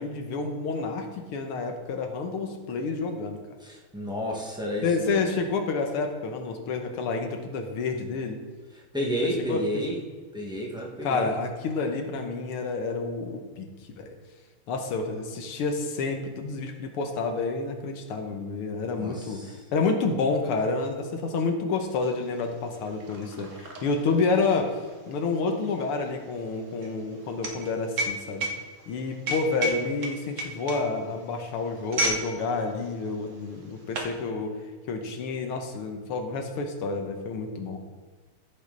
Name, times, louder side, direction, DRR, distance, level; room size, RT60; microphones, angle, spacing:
voice 1, 0.0-3.4 4.8-8.4 9.5-9.6 11.0-14.1 14.7-19.4 19.7-24.7 25.1-28.5 28.9-34.5 34.9-37.8, left 4 dB, 85° left, 4 dB, 2.0 m, -29 dB
voice 2, 3.6-5.3 8.7-10.0 10.3-11.3 19.0-19.6, equal, ahead, -3 dB, 1.2 m, -31 dB
sound 1, 22.0-22.1 22.3-32.3 32.6-32.8 33.5-34.2, right 1 dB, 45° right, 1.2 m, -32 dB
14.5 x 5.6 x 4.0 m, 1.5 s
omnidirectional pair, 2.4 m